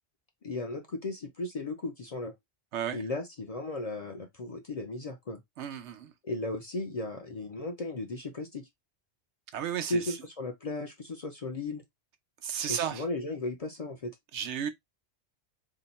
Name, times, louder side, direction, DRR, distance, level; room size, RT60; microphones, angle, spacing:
voice 1, 0.4-2.3 2.9-5.4 6.2-8.7 9.9-11.8 12.7-14.1, left 2 dB, 45° left, 0.5 m, -35 dB
voice 2, 2.7-3.0 5.6-6.1 9.5-10.2 12.4-13.1 14.3-14.7, right 9 dB, 85° right, 0.9 m, -33 dB
2.8 x 2.2 x 4.0 m
omnidirectional pair, 1.1 m